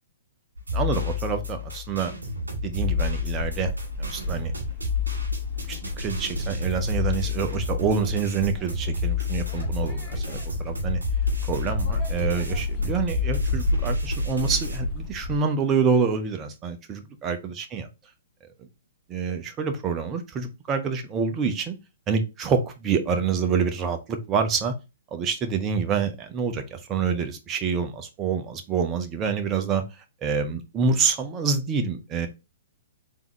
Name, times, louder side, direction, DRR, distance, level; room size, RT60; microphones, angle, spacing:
sound 1, 0.6-14.8, left 5 dB, 80° right, 2.1 m, -30 dB
voice 1, 0.7-2.1 2.6-3.7 4.0-4.5 5.6-11.0 11.5-17.9 19.1-21.8 22.1-24.7 25.1-29.8 30.2-32.3, right 5 dB, 25° right, 6 dB, 0.7 m, -27 dB
sound 2, 2.7-15.4, left 1 dB, 20° left, 1.4 m, -32 dB
3.8 x 3.6 x 3.0 m, 0.27 s
figure-of-eight pair, 120°, 0 cm